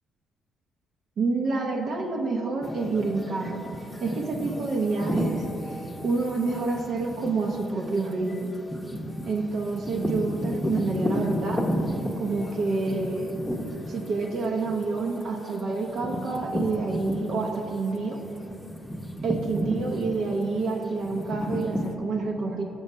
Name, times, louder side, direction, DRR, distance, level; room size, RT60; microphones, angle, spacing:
voice 1, 1.2-3.6 4.0-8.5 9.3-11.6 12.2-13.3 13.9-18.2 19.2-22.6, right 3 dB, 65° right, 1 dB, 0.7 m, -28 dB
sound 1, 2.6-17.8 18.1-21.9, equal, 15° left, 0.7 m, -33 dB
6.4 x 6.1 x 5.5 m, 3.0 s
cardioid pair, 90°, 0 cm